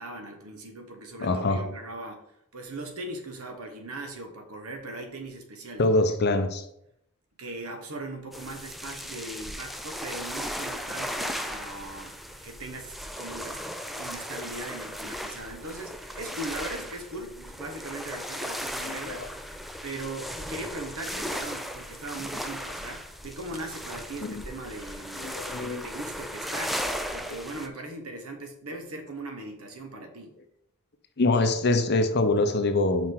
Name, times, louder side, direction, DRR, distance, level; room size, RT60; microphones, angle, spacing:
voice 1, 0.0-2.2 2.5-5.9 7.4-12.2 12.4-13.6 13.9-19.3 19.8-26.8 27.1-30.4, right 2 dB, 70° right, 1.2 m, -39 dB
voice 2, 1.2-1.6 5.8-6.6 18.8-19.3 24.2-24.4 25.2-25.8 31.2-33.1, left 2 dB, 50° left, 0.7 m, -24 dB
sound 1, 8.3-27.7, equal, ahead, 0.4 m, -36 dB
5.7 x 4.8 x 4.6 m
head